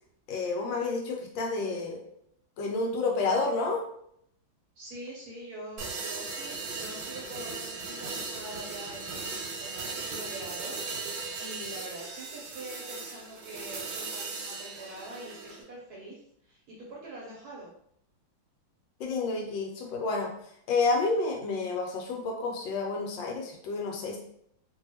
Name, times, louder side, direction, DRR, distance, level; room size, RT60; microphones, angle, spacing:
voice 1, 0.3-2.0 2.6-3.8 19.0-20.3 20.7-24.2, left 3 dB, 75° left, 1 dB, 1.2 m, -29 dB
voice 2, 4.8-11.1 11.4-17.7, right 1 dB, 65° right, -3 dB, 1.0 m, -44 dB
sound 1, 5.8-15.6, right 4 dB, 85° right, 1.5 m, -38 dB
2.9 x 2.6 x 2.8 m, 0.70 s
omnidirectional pair, 2.2 m